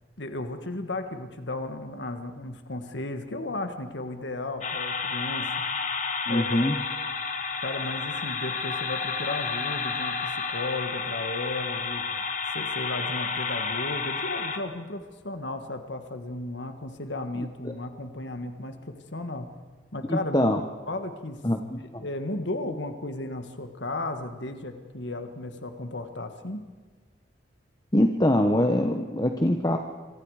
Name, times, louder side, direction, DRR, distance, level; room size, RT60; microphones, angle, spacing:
voice 1, 0.2-5.5 6.3-6.6 7.6-19.5 19.9-20.5 20.9-21.4 22.0-26.6, left 2 dB, 70° left, 7 dB, 1.7 m, -34 dB
sound 1, 4.6-14.6, left 5 dB, 40° left, 1.9 m, -31 dB
voice 2, 6.3-6.7 17.6-17.7 20.1-20.6 21.4-22.0 27.9-29.8, left 1 dB, 20° left, 4 dB, 1.1 m, -23 dB
26.5 x 25.0 x 5.0 m, 1.4 s
head